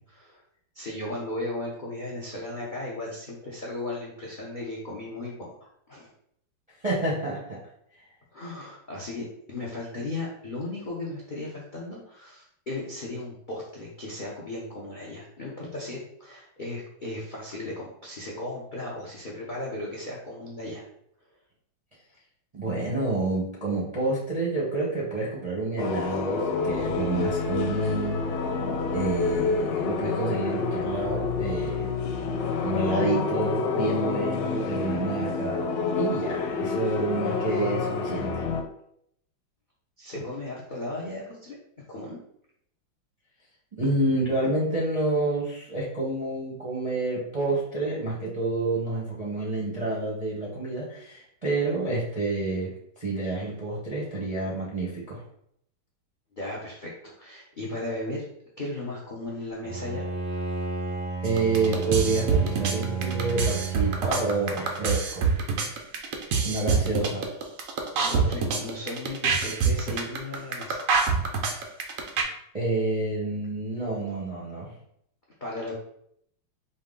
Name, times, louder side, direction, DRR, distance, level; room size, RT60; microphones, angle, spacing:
voice 1, 0.7-5.6 5.9-6.1 8.3-20.8 40.0-41.6 41.9-42.2 56.4-58.3 58.6-60.0 60.3-60.5 68.0-70.8 75.4-75.7, left 2 dB, 60° left, -4 dB, 0.5 m, -36 dB
voice 2, 6.8-7.6 22.5-28.4 28.9-31.9 32.6-35.7 35.9-38.4 43.7-55.2 61.2-65.3 66.4-67.3 72.5-74.7, right 2 dB, 40° right, -5 dB, 0.5 m, -28 dB
sound 1, 25.8-38.6, left 4 dB, 85° left, 1.4 m, -28 dB
Bowed string instrument, 59.6-65.0, right 5 dB, 30° left, 0.9 m, -33 dB
sound 2, 61.3-72.2, right 5 dB, 85° right, 0.7 m, -25 dB
4.7 x 2.7 x 3.7 m, 0.71 s
omnidirectional pair, 2.3 m